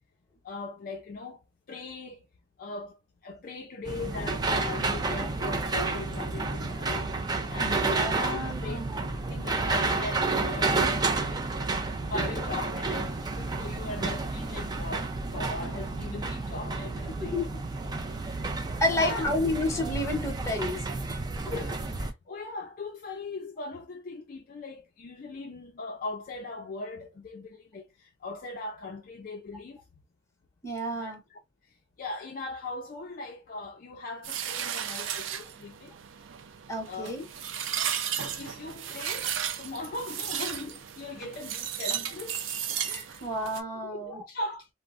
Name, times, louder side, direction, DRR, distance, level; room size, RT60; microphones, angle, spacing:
voice 1, 0.4-1.4 1.7-2.3 2.6-3.0 3.2-7.1 7.5-11.4 11.7-17.4 18.9-19.3 21.5-29.8 30.9-31.4 32.0-35.9 36.9-37.1 38.2-42.4 43.1-43.2 43.8-44.7, left 3 dB, 45° left, 0.4 m, -39 dB
sound 1, 3.8-22.1, right 3 dB, 20° right, 0.4 m, -30 dB
voice 2, 7.6-9.0 17.3-17.5 18.8-20.8 30.6-31.2 36.7-37.2 42.8-44.2, left 1 dB, 15° left, 0.9 m, -30 dB
sound 2, 34.2-43.6, right 9 dB, 85° right, 0.4 m, -34 dB
3.5 x 2.0 x 2.4 m
head